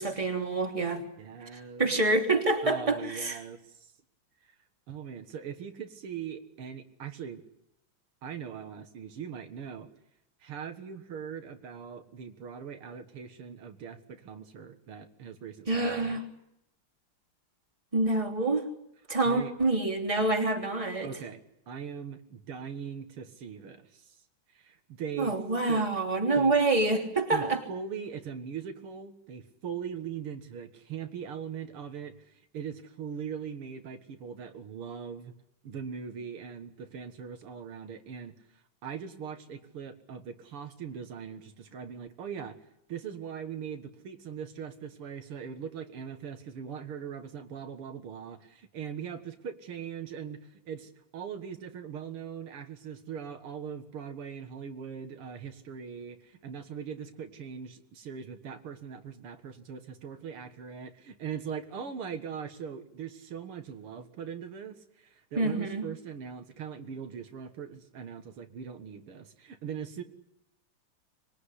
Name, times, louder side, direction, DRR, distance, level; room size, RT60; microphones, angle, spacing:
voice 1, 0.0-1.0 1.5-3.4 15.7-16.2 17.9-18.7 19.1-21.1 25.2-27.6 65.4-65.8, right 2 dB, 15° right, 1 dB, 3.1 m, -27 dB
voice 2, 1.2-1.9 2.6-3.9 4.5-4.6 4.9-7.4 8.2-9.9 10.4-16.2 19.2-19.5 21.0-21.4 21.7-24.2 24.5-25.4 25.7-25.9 26.4-26.6 27.3-35.3 35.6-38.3 38.8-42.6 42.9-70.0, right 7 dB, 80° right, 7 dB, 2.5 m, -40 dB
25.5 x 21.0 x 10.0 m, 0.80 s
omnidirectional pair, 2.4 m